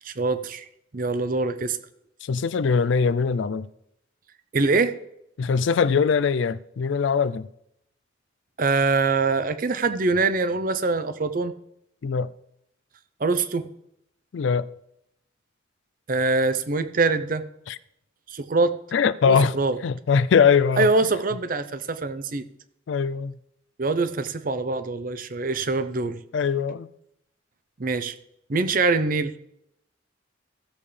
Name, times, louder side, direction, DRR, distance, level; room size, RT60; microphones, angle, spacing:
voice 1, 0.0-0.7 0.9-1.8 4.5-4.9 8.6-11.5 13.2-13.7 16.1-17.4 18.3-18.8 19.3-19.8 20.8-22.4 23.8-26.2 27.8-28.1 28.5-29.3, right 3 dB, 45° right, 0.6 m, -24 dB
voice 2, 2.2-3.7 5.4-7.5 12.0-12.3 14.3-14.7 17.7-17.8 18.9-19.5 19.8-20.9 22.9-23.3 26.3-26.9, left 6 dB, 70° left, 0.4 m, -21 dB
15.5 x 7.2 x 3.3 m
head